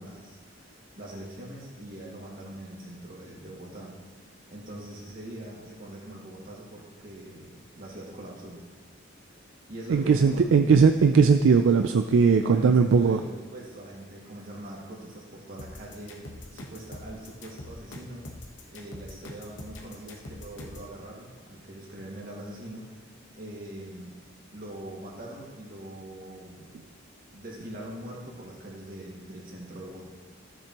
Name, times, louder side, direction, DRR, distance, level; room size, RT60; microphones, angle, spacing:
voice 1, 0.0-8.6 9.7-10.5 12.3-18.3 18.7-23.1 23.3-24.2 24.5-26.6 27.3-30.1, right 1 dB, 45° right, -3 dB, 1.9 m, -42 dB
voice 2, 9.9-13.2, right 5 dB, 70° right, 7 dB, 0.3 m, -19 dB
sound 1, 15.6-20.9, left 2 dB, 65° left, 1.1 m, -43 dB
14.0 x 6.8 x 2.9 m, 1.4 s
head